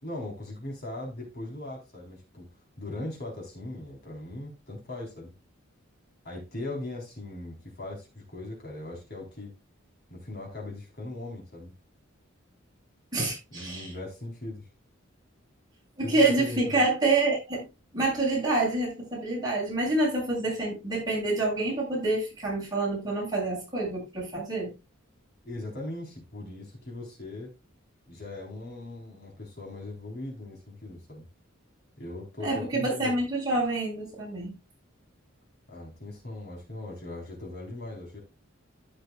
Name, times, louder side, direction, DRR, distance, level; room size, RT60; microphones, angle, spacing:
voice 1, 0.0-2.5 2.8-5.3 6.2-9.5 10.1-11.7 13.5-14.6 16.0-16.8 25.4-27.5 28.1-31.3 32.0-33.2 35.7-38.2, left 2 dB, 50° left, 3.9 m, -39 dB
voice 2, 13.1-13.9 16.0-17.6 17.9-24.7 32.4-34.5, right 2 dB, 20° right, 6.7 m, -27 dB
15.0 x 6.5 x 2.3 m
head